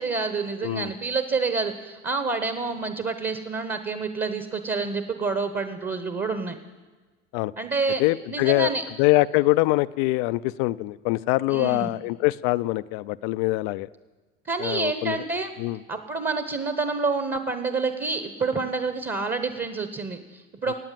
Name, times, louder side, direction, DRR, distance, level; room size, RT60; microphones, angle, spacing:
voice 1, 0.0-6.6 7.6-8.0 8.3-8.8 11.5-11.9 14.4-15.5 15.9-20.7, right 4 dB, 25° right, 9 dB, 1.1 m, -28 dB
voice 2, 8.0-8.7 9.0-13.9 14.6-15.2 15.6-15.8 20.7-20.8, left 19 dB, 70° left, 16 dB, 0.5 m, -23 dB
17.0 x 8.8 x 7.6 m, 1.3 s
supercardioid pair, 90°, 36 cm